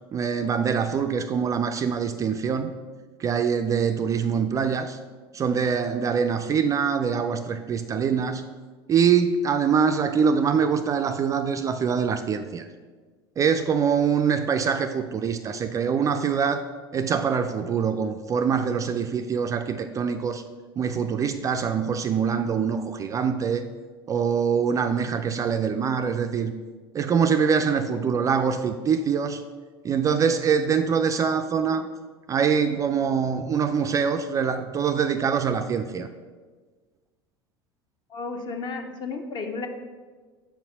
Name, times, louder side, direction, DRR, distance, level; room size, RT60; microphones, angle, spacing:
voice 1, 0.1-2.7 3.2-5.0 5.3-8.5 8.9-12.7 13.4-16.6 16.9-20.4 20.8-23.6 24.1-26.5 26.9-29.4 29.8-31.9 32.3-36.1, right 6 dB, 25° right, 7 dB, 0.3 m, -24 dB
voice 2, 38.1-39.7, left 4 dB, 35° left, 6 dB, 0.8 m, -33 dB
5.6 x 4.4 x 5.3 m, 1.4 s
figure-of-eight pair, 75°, 13 cm